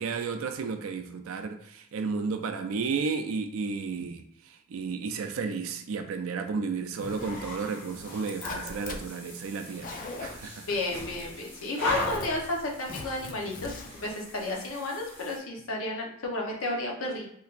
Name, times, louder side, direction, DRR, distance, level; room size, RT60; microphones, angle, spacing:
voice 1, 0.0-10.8, right 5 dB, 80° right, 0.4 m, -33 dB
sound 1, 6.9-15.4, left 1 dB, 10° left, 0.9 m, -40 dB
Zipper (clothing), 7.0-7.5 7.9-9.0 9.6-10.5 11.1-11.5 11.8-12.3 12.9-14.1, left 3 dB, 40° left, 0.3 m, -41 dB
voice 2, 10.7-13.7 14.0-17.3, left 2 dB, 75° left, 0.8 m, -32 dB
3.3 x 3.0 x 2.4 m
head